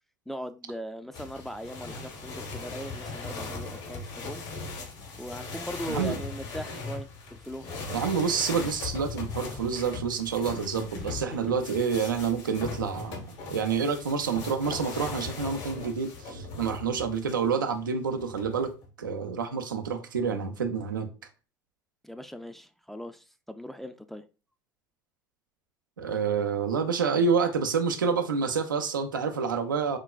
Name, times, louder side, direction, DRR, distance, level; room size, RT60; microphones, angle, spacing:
voice 1, 0.3-4.5 5.1-7.1 7.4-7.8 11.0-11.4 22.0-24.2, equal, ahead, 0.4 m, -39 dB
sound 1, 1.1-17.5 18.2-18.9, left 3 dB, 65° left, 1.3 m, -39 dB
voice 2, 7.9-18.7 19.0-21.1 26.0-30.0, right 5 dB, 90° right, 0.5 m, -28 dB
4.6 x 2.2 x 2.4 m
hypercardioid pair, 70°, 10 cm